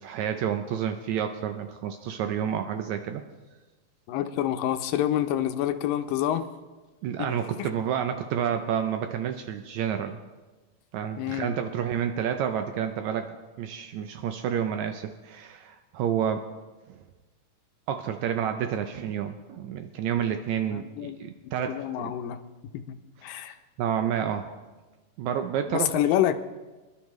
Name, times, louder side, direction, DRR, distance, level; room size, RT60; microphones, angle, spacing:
voice 1, 0.0-3.2 7.0-10.2 10.9-13.3 13.6-16.5 16.9-17.0 17.9-22.1 23.3-24.5 25.2-25.9, right 9 dB, 90° right, 6 dB, 1.6 m, -29 dB
voice 2, 4.1-6.5 7.2-7.7 11.2-11.5 20.7-21.3 21.7-23.0 23.2-23.6 25.7-26.4, left 11 dB, 80° left, 9 dB, 2.3 m, -28 dB
25.5 x 11.5 x 3.2 m, 1.2 s
omnidirectional pair, 4.1 m